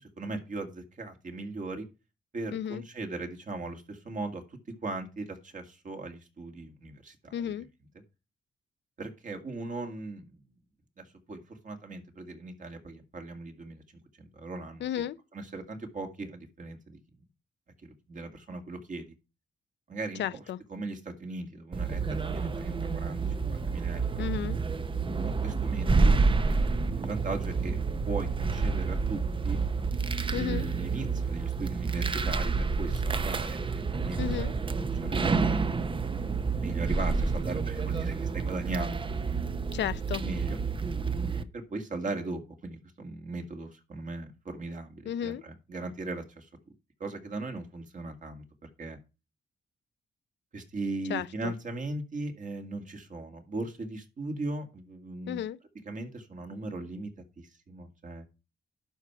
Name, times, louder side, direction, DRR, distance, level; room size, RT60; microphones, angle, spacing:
voice 1, 0.0-1.9 2.3-7.5 9.0-10.4 11.0-13.8 14.2-15.0 15.3-17.0 18.1-19.1 19.9-20.4 20.7-24.3 25.2-27.8 28.1-29.6 30.3-34.2 34.7-35.5 36.6-39.4 40.2-40.6 41.3-46.5 47.0-49.0 50.5-55.4 55.9-57.1 57.4-58.3, right 2 dB, 45° right, 2.0 m, -38 dB
voice 2, 2.5-2.8 7.3-7.7 14.8-15.2 20.2-20.6 24.2-24.6 30.3-30.7 34.2-34.5 39.7-40.2 45.1-45.4 51.1-51.5 55.3-55.6, left 10 dB, 70° left, 0.5 m, -33 dB
sound 1, 21.7-41.4, right 4 dB, 25° right, 0.7 m, -29 dB
11.5 x 4.6 x 5.8 m
cardioid pair, 110°, 19 cm